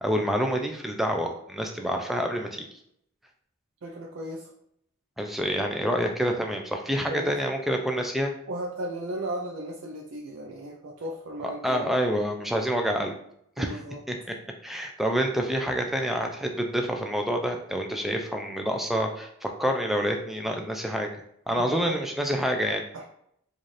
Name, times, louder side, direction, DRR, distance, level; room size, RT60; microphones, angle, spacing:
voice 1, 0.0-2.6 5.2-8.3 11.4-13.1 13.6-13.8 14.1-14.2 14.6-22.8, equal, ahead, 3 dB, 0.4 m, -27 dB
voice 2, 3.8-4.5 7.1-7.5 8.5-11.9 13.6-14.0 21.5-22.0 22.9-23.1, right 1 dB, 75° right, -1 dB, 0.5 m, -35 dB
4.0 x 2.5 x 3.2 m, 0.72 s
head